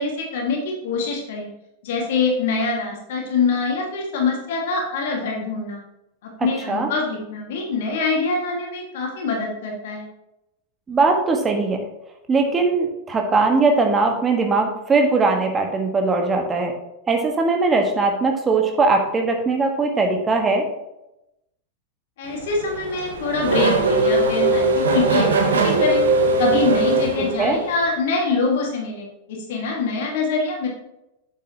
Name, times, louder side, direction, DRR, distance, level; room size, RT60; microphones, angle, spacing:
voice 1, 0.0-1.5 1.8-5.8 6.4-10.1 22.2-26.0 26.4-30.7, left 4 dB, 55° left, 0 dB, 1.9 m, -24 dB
voice 2, 10.9-11.8 12.3-16.7 17.1-20.7 27.2-27.6, right 3 dB, 20° right, 3 dB, 1.4 m, -20 dB
Race car auto racing / Accelerating revving vroom, 22.3-27.8, right 2 dB, 65° right, 1.1 m, -20 dB
8.3 x 7.4 x 2.9 m, 0.88 s
figure-of-eight pair, 90°, 0 cm